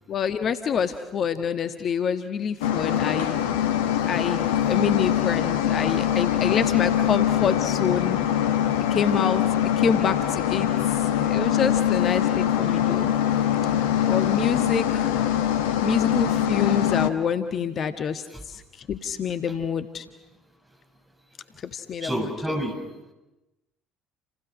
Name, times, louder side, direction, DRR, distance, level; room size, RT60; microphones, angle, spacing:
voice 1, 0.1-3.3 4.0-8.2 8.9-10.7 11.3-13.1 14.0-15.2 15.8-18.6 18.9-20.0 21.7-22.1, left 7 dB, 45° left, 9 dB, 1.4 m, -26 dB
sound 1, 2.6-17.1, left 10 dB, 70° left, 1.3 m, -23 dB
voice 2, 22.0-22.8, right 1 dB, 15° right, 3 dB, 7.3 m, -29 dB
29.5 x 29.5 x 6.3 m, 0.96 s
figure-of-eight pair, 55°, 0 cm